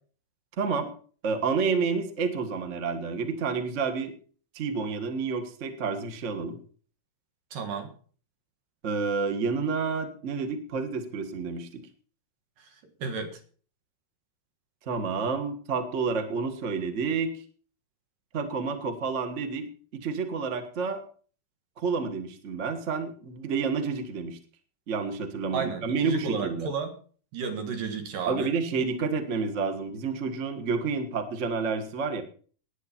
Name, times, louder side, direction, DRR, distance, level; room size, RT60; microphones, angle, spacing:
voice 1, 0.6-0.9 1.2-4.1 4.5-6.6 8.8-11.8 14.9-17.3 18.3-19.7 19.9-21.0 21.8-24.4 24.9-26.7 28.2-32.2, right 5 dB, 40° right, 8 dB, 1.0 m, -29 dB
voice 2, 7.5-7.9 12.6-12.7 13.0-13.4 25.5-26.9 27.3-28.5, right 5 dB, 85° right, 6 dB, 3.5 m, -32 dB
18.5 x 9.8 x 4.4 m, 0.43 s
omnidirectional pair, 3.7 m